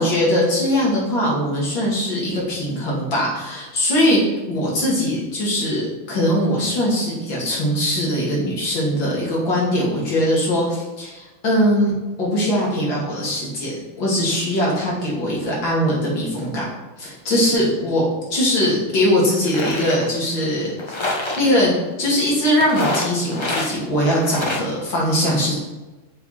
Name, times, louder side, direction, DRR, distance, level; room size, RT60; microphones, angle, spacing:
voice 1, 0.0-4.2 4.5-11.9 12.2-16.7 17.0-21.0 21.4-21.7 22.0-25.6, equal, 70° left, -5 dB, 3.1 m, -21 dB
sound 1, 18.6-18.7 19.3-20.0 20.8-21.4 22.6-23.7 24.0-24.7, left 2 dB, 25° left, 0.6 m, -26 dB
6.8 x 4.9 x 5.7 m, 1.1 s
omnidirectional pair, 2.1 m